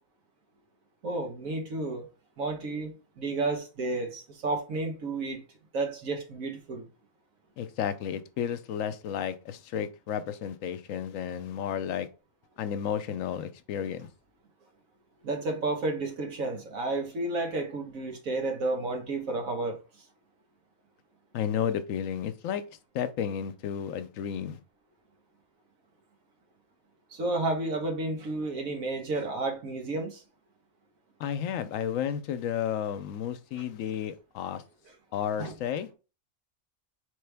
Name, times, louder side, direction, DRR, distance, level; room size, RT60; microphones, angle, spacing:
voice 1, 1.0-2.1 2.4-5.4 5.7-6.9 15.2-19.8 27.1-30.2 35.4-35.5, right 2 dB, 90° right, 1.5 m, -31 dB
voice 2, 7.6-12.1 12.6-14.1 21.3-22.6 22.9-24.6 31.2-34.6 35.1-35.9, left 9 dB, 75° left, 1.0 m, -32 dB
4.6 x 3.4 x 3.4 m
omnidirectional pair, 1.4 m